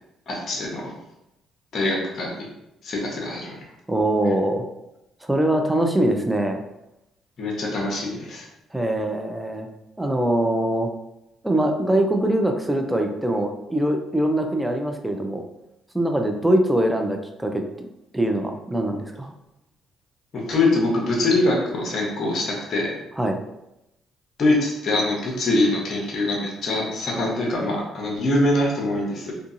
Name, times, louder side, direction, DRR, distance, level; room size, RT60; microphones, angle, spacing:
voice 1, 0.3-0.9 1.7-2.3 2.8-3.6 7.4-8.4 20.3-22.9 24.4-29.3, left 2 dB, 55° left, -2 dB, 0.8 m, -23 dB
voice 2, 3.9-4.6 5.3-6.6 8.7-9.7 10.0-10.9 11.4-15.5 15.9-17.9 18.1-19.3 23.2-23.4, right 1 dB, 10° right, 4 dB, 0.4 m, -23 dB
2.6 x 2.3 x 2.5 m, 0.89 s
supercardioid pair, 70°, 0 cm